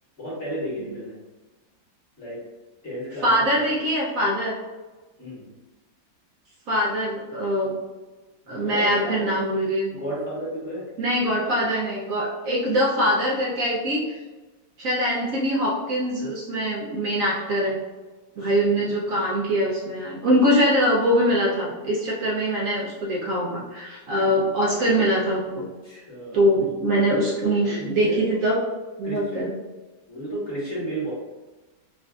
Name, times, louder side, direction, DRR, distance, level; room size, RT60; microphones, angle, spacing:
voice 1, 0.2-1.1 2.2-2.4 2.8-3.7 5.2-5.4 8.4-9.3 9.9-10.8 18.4-18.5 25.8-26.4 27.6-28.2 29.0-29.2 30.1-31.1, right 1 dB, 40° left, -7 dB, 1.5 m, -32 dB
voice 2, 3.2-4.6 6.7-7.8 8.5-9.9 11.0-14.1 14.8-17.8 18.4-25.7 26.3-28.6 29.0-29.5, equal, 70° right, -3 dB, 0.8 m, -23 dB
4.8 x 2.4 x 2.3 m, 1.2 s
omnidirectional pair, 2.0 m